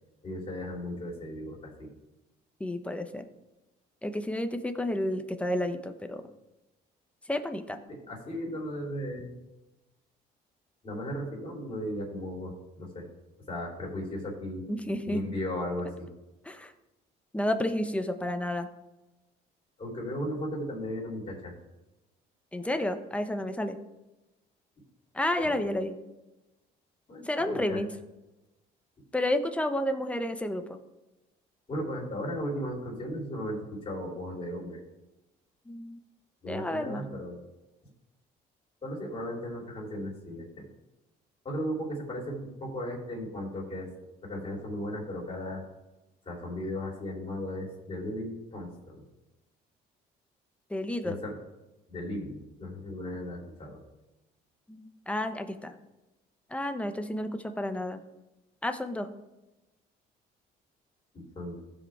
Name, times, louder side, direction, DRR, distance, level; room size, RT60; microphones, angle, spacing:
voice 1, 0.2-1.9 7.9-9.3 10.8-13.1 13.5-14.6 15.1-16.1 19.8-21.5 25.4-25.6 27.1-27.8 31.7-34.8 36.4-37.4 38.8-40.7 41.5-43.9 44.2-45.6 46.2-49.0 51.0-51.4 51.9-53.8 61.1-61.6, equal, 35° left, -2 dB, 3.5 m, -36 dB
voice 2, 2.6-3.2 4.0-6.2 7.3-7.8 14.7-15.2 16.4-16.7 17.3-18.7 22.5-23.8 25.1-26.0 27.2-27.9 29.1-30.8 35.7-36.0 36.5-37.1 50.7-51.2 54.7-55.7 56.5-58.0 58.6-59.1, left 1 dB, 5° left, 7 dB, 0.8 m, -31 dB
15.5 x 5.1 x 3.6 m, 1.0 s
cardioid pair, 110°, 17 cm